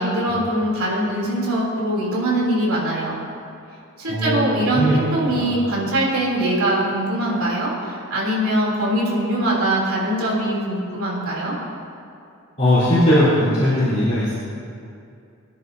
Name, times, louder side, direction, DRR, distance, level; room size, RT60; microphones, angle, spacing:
voice 1, 0.0-3.2 4.0-11.5, right 1 dB, 75° right, -4 dB, 3.2 m, -22 dB
voice 2, 4.1-5.0 5.2-5.5 12.6-14.3, equal, 30° left, -13 dB, 3.5 m, -19 dB
22.5 x 10.0 x 2.8 m, 2.5 s
head